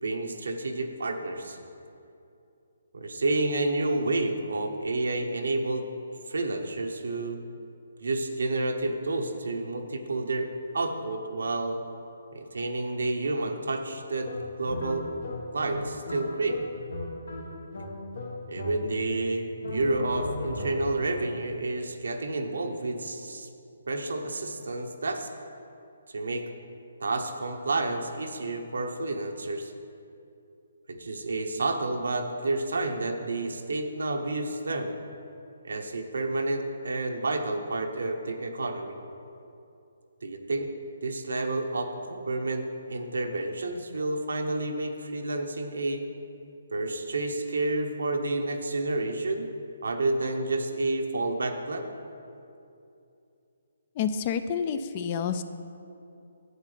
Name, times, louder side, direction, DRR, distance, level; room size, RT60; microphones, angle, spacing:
voice 1, 0.0-1.6 2.9-5.9 6.3-7.4 8.0-11.8 12.3-14.3 14.6-15.1 15.5-16.6 18.5-23.5 23.9-25.3 26.1-26.5 27.0-29.7 30.9-35.0 35.6-39.0 40.2-40.7 41.0-46.0 46.7-49.5 49.8-51.9, right 2 dB, 80° right, 4 dB, 1.0 m, -30 dB
sound 1, 14.2-19.2 19.6-21.1, left 1 dB, 75° left, 1.4 m, -37 dB
voice 2, 54.0-55.4, left 7 dB, 35° left, 10 dB, 0.4 m, -29 dB
11.0 x 8.5 x 3.3 m, 2.7 s
hypercardioid pair, 155°, 0 cm